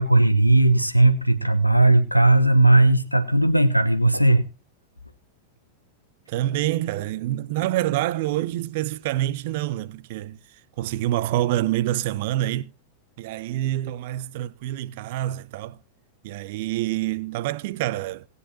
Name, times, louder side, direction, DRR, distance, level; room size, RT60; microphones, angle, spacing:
voice 1, 0.0-4.4, right 2 dB, 90° left, 0.9 m, -17 dB
voice 2, 6.3-10.4 10.8-12.7 13.2-15.8 16.2-18.3, right 14 dB, 50° right, 0.5 m, -26 dB
18.5 x 9.6 x 2.8 m
figure-of-eight pair, 90°, 0 cm